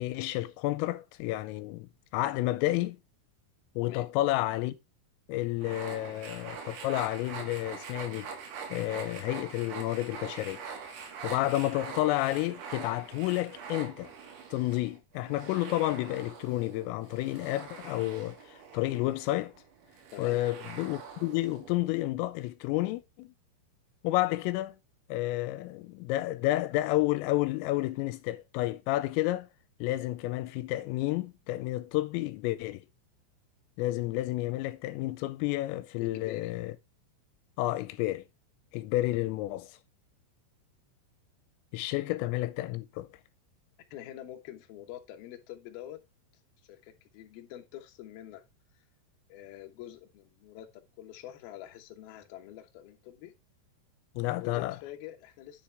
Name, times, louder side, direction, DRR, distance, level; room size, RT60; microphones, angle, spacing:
voice 1, 0.0-1.9 2.1-3.0 3.8-4.8 5.3-8.3 8.7-10.6 11.2-14.1 14.5-19.5 20.2-23.3 24.0-24.8 25.1-29.5 29.8-32.9 33.8-36.8 37.6-38.2 38.7-39.7 41.7-43.1 54.2-54.8, left 17 dB, 85° left, 3.2 m, -30 dB
sound 1, 5.6-22.0, right 6 dB, 90° right, 4.9 m, -44 dB
voice 2, 20.1-20.4 36.0-36.6 43.9-46.0 46.6-48.4 48.7-48.8 49.3-53.3 54.3-55.6, left 12 dB, 70° left, 2.4 m, -46 dB
9.8 x 5.7 x 3.4 m
omnidirectional pair, 5.9 m